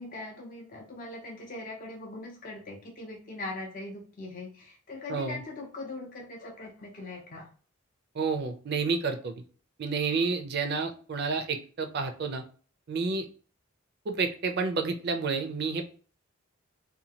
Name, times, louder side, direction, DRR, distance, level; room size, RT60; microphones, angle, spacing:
voice 1, 0.0-7.5, left 2 dB, 40° left, 0 dB, 0.5 m, -41 dB
voice 2, 5.1-5.4 8.1-9.3 9.8-12.4 12.9-13.2 14.1-15.9, right 4 dB, 50° right, 7 dB, 0.4 m, -30 dB
2.8 x 2.2 x 2.7 m, 0.40 s
head